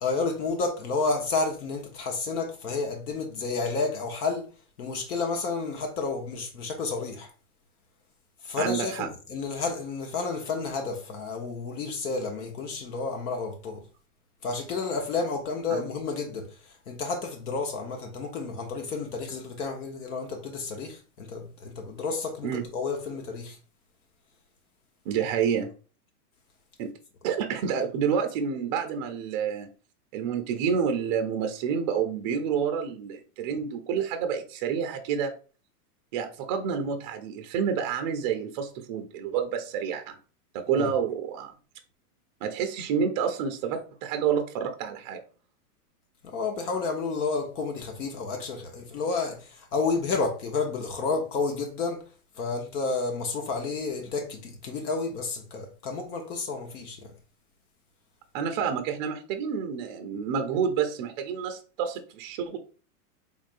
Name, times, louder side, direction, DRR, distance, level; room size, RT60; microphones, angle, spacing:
voice 1, 0.0-4.5 4.8-7.3 8.4-13.8 14.4-23.6 40.7-40.9 46.2-52.0 52.4-57.1, left 4 dB, 75° left, 1.1 m, -31 dB
voice 2, 8.6-9.1 15.7-15.9 22.4-22.6 25.1-25.7 26.8-26.9 27.2-29.7 30.1-35.3 36.1-40.2 40.5-41.5 42.4-45.2 58.3-62.6, right 7 dB, 30° right, 0.4 m, -29 dB
3.6 x 3.3 x 2.5 m
hypercardioid pair, 140°, 46 cm